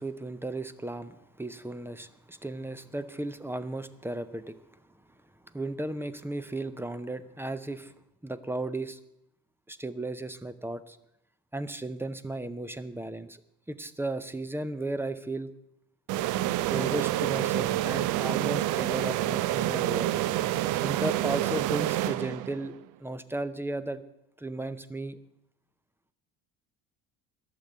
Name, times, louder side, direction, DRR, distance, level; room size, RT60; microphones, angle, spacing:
voice 1, 0.0-4.6 5.5-7.9 8.2-9.0 9.7-11.0 11.5-13.4 13.7-15.5 16.7-20.1 20.8-22.7 23.0-24.0 24.4-25.2, right 2 dB, 5° right, 14 dB, 0.6 m, -35 dB
sound 1, 16.1-22.7, right 14 dB, 65° right, 0.5 m, -28 dB
11.5 x 6.8 x 8.4 m, 0.82 s
cardioid pair, 110°, 34 cm